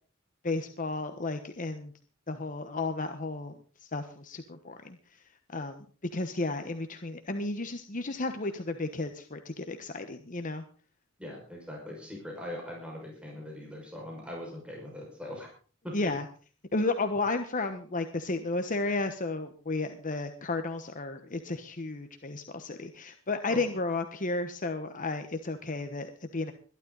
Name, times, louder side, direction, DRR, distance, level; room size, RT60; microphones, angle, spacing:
voice 1, 0.4-1.9 2.3-5.2 5.5-5.9 6.1-10.6 15.9-16.3 16.7-26.5, left 3 dB, 40° left, 7 dB, 1.2 m, -33 dB
voice 2, 11.2-15.5 15.8-15.9 23.5-23.7, left 1 dB, 5° right, -1 dB, 5.6 m, -41 dB
22.0 x 12.0 x 4.0 m, 0.40 s
head